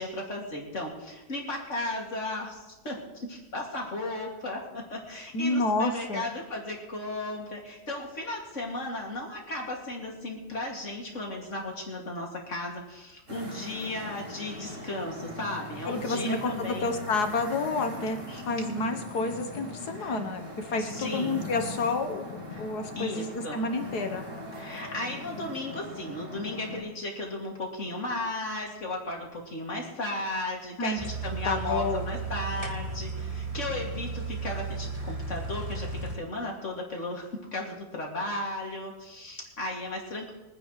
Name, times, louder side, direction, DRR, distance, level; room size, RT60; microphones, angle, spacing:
voice 1, 0.0-16.9 18.3-18.4 19.9-20.2 20.8-21.4 22.5-22.6 22.9-23.6 24.6-40.3, left 2 dB, 40° left, -1 dB, 2.9 m, -35 dB
voice 2, 5.3-6.3 15.9-18.2 18.5-22.2 22.6-24.3 30.8-32.0, left 3 dB, 65° left, 6 dB, 1.7 m, -29 dB
sound 1, 13.3-26.8, left 1 dB, 55° right, 4.8 m, -40 dB
sound 2, 31.0-36.2, right 4 dB, 20° right, 1.7 m, -35 dB
23.5 x 10.0 x 3.3 m, 1.1 s
omnidirectional pair, 1.9 m